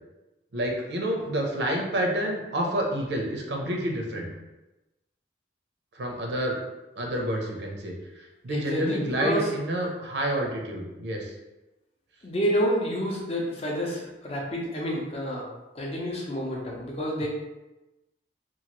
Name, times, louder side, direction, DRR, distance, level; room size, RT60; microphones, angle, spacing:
voice 1, 0.5-4.3 5.9-6.6 7.0-11.3 17.2-17.3, right 1 dB, 75° right, 0 dB, 0.6 m, -29 dB
voice 2, 8.5-9.5 12.2-15.4 15.7-17.3, equal, 35° left, -2 dB, 0.6 m, -29 dB
3.0 x 2.4 x 2.8 m, 1.0 s
head